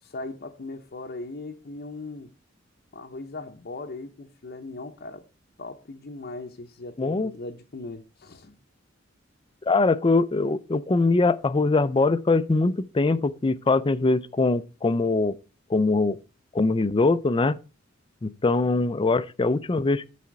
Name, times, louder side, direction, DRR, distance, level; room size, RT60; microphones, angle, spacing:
voice 1, 0.0-2.3 2.9-5.2 5.6-8.6, left 2 dB, 50° left, 0.8 m, -39 dB
voice 2, 7.0-7.3 9.7-15.3 15.7-16.2 16.5-17.6 18.2-20.0, left 3 dB, 25° left, 0.4 m, -22 dB
12.5 x 4.2 x 4.7 m
head